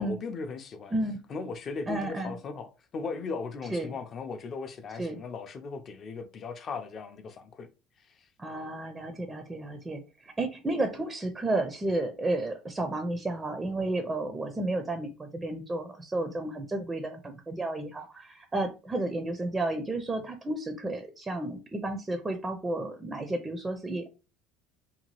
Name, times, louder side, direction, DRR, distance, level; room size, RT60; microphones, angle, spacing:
voice 1, 0.0-0.9 1.3-2.7 2.9-7.7, left 4 dB, 40° left, 0.5 m, -37 dB
voice 2, 0.9-1.2 1.9-2.4 3.7-4.0 5.0-5.2 8.4-24.1, right 2 dB, 15° right, 0.4 m, -32 dB
2.8 x 2.3 x 2.9 m
supercardioid pair, 110°, 0 cm